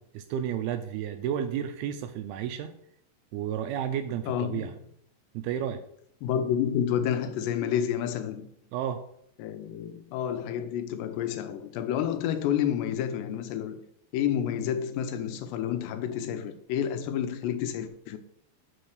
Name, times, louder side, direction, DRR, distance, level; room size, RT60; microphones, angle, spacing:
voice 1, 0.2-2.7 3.3-4.7 5.3-5.8 8.7-9.0, right 9 dB, 85° right, 2.3 m, -31 dB
voice 2, 4.3-4.8 6.2-8.5 9.4-13.8 14.1-18.2, left 9 dB, 90° left, 2.8 m, -29 dB
6.3 x 4.3 x 6.5 m
omnidirectional pair, 4.8 m